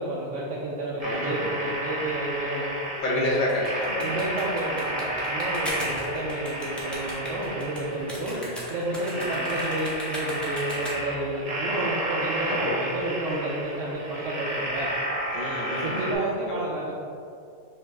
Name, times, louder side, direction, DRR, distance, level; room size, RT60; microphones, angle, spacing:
voice 1, 0.0-2.8 3.1-3.4 4.0-8.4 8.7-14.9 15.8-16.9, right 1 dB, 80° right, -5 dB, 0.9 m, -30 dB
voice 2, 1.0-1.5 3.0-4.2 5.7-5.9 8.3-8.6 9.1-9.4 12.5-12.8 15.3-16.0 16.5-16.6, left 1 dB, 45° left, -4 dB, 0.9 m, -30 dB
sound 1, 1.0-16.1, right 1 dB, 40° right, 0.9 m, -32 dB
sound 2, 3.5-11.2, equal, ahead, 0.7 m, -38 dB
5.5 x 2.5 x 3.4 m, 2.4 s
omnidirectional pair, 1.2 m